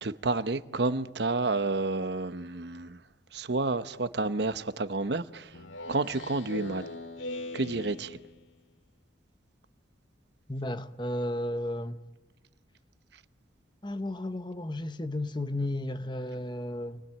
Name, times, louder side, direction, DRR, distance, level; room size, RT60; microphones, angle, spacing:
voice 1, 0.0-3.0 3.3-5.6 5.9-6.9 7.5-8.2, right 3 dB, 60° right, 0.9 m, -30 dB
Speech synthesizer, 5.5-8.6, left 2 dB, 85° left, 2.1 m, -40 dB
voice 2, 10.5-12.0 13.8-17.0, left 1 dB, 25° left, 0.9 m, -33 dB
29.0 x 20.5 x 9.2 m
head